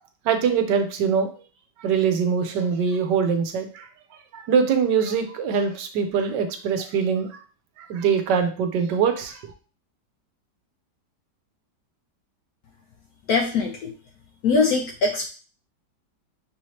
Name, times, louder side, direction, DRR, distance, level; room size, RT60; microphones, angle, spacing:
voice 1, 0.2-1.3 1.8-3.9 4.3-7.4 7.8-9.5, right 6 dB, 80° right, 7 dB, 1.4 m, -23 dB
voice 2, 13.3-13.9 14.4-15.3, left 4 dB, 70° left, 2 dB, 1.0 m, -22 dB
5.4 x 2.8 x 3.1 m, 0.38 s
omnidirectional pair, 1.9 m